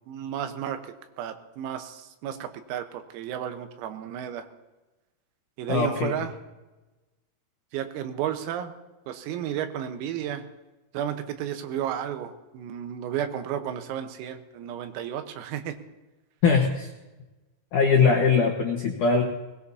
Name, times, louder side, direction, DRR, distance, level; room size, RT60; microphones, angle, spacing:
voice 1, 0.1-4.5 5.6-6.3 7.7-8.7 9.1-10.5 10.9-15.8, right 9 dB, 85° right, 7 dB, 3.8 m, -33 dB
voice 2, 5.7-6.2 16.4-16.9 17.7-19.2, left 5 dB, 75° left, 0 dB, 1.8 m, -21 dB
21.0 x 20.0 x 2.8 m, 1.1 s
omnidirectional pair, 5.9 m